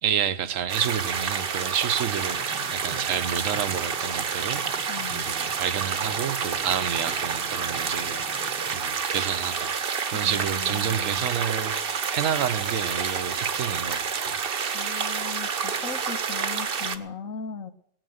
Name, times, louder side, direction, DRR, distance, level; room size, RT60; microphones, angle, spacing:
voice 1, 0.0-14.4, right 8 dB, 75° right, 1.2 m, -30 dB
sound 1, 0.7-17.0, right 6 dB, 45° right, 1.1 m, -29 dB
Fire, 2.3-8.8, equal, 10° left, 1.2 m, -47 dB
voice 2, 4.9-5.3 10.2-11.3 14.7-17.7, left 5 dB, 80° left, 1.7 m, -38 dB
18.5 x 9.1 x 7.9 m
omnidirectional pair, 1.4 m